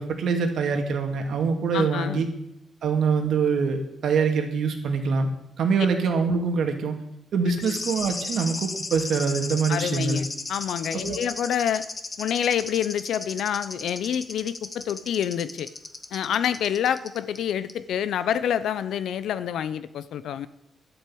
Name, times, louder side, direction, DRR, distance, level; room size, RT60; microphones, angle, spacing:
voice 1, 0.0-2.3 2.8-5.3 5.6-7.0 7.3-10.2 11.0-11.2, right 5 dB, 70° right, 5 dB, 2.2 m, -24 dB
voice 2, 1.7-2.3 7.7-7.8 9.7-11.9 12.2-15.7 16.1-20.5, left 9 dB, 80° left, 15 dB, 0.7 m, -27 dB
sound 1, 7.6-17.4 17.7-17.8, left 3 dB, 25° left, 1.2 m, -35 dB
11.5 x 8.0 x 8.7 m, 0.81 s
cardioid pair, 125°, 0 cm